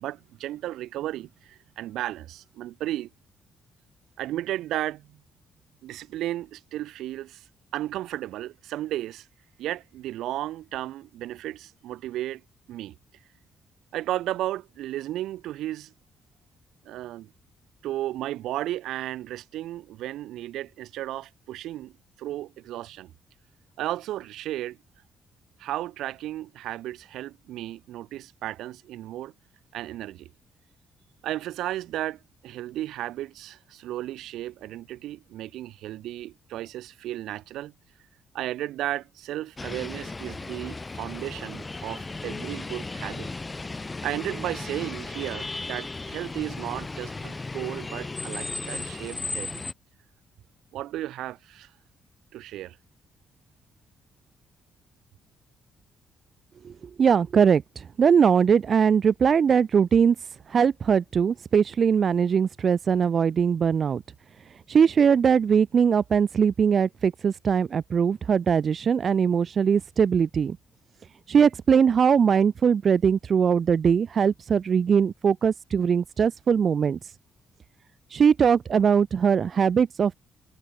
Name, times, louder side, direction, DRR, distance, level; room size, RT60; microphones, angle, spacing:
voice 1, 0.0-3.1 4.2-5.2 5.8-7.4 7.7-9.3 9.6-12.4 12.7-13.0 13.9-15.9 16.9-17.3 17.8-21.9 22.2-23.1 23.8-24.8 25.6-29.3 29.7-30.3 31.2-37.7 38.3-43.3 44.0-49.6 50.7-51.7 52.3-52.8, right 14 dB, 85° right, 5.5 m, -34 dB
sound 1, 39.6-49.7, left 3 dB, 20° left, 3.5 m, -35 dB
voice 2, 57.0-60.1 60.5-64.0 64.7-70.6 71.3-77.1 78.1-80.2, right 7 dB, 50° right, 1.2 m, -21 dB
cardioid pair, 90°, 0 cm